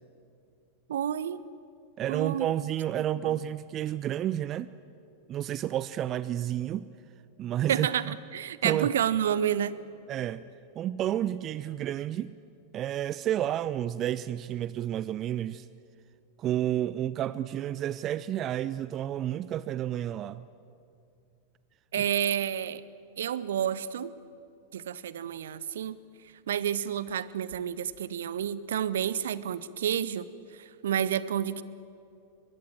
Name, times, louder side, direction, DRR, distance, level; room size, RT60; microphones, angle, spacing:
voice 1, 0.9-1.4 2.1-2.5 3.2-3.4 7.7-9.8 21.9-22.8 23.2-24.1 24.7-26.0 26.5-30.3 30.5-31.6, right 9 dB, 60° right, 0.7 m, -30 dB
voice 2, 2.0-4.7 5.3-6.9 7.4-8.1 8.6-8.9 10.1-10.5 10.8-12.3 12.7-15.7 16.4-20.4, right 11 dB, 30° right, 0.5 m, -30 dB
23.5 x 21.5 x 7.7 m
figure-of-eight pair, 90°, 0 cm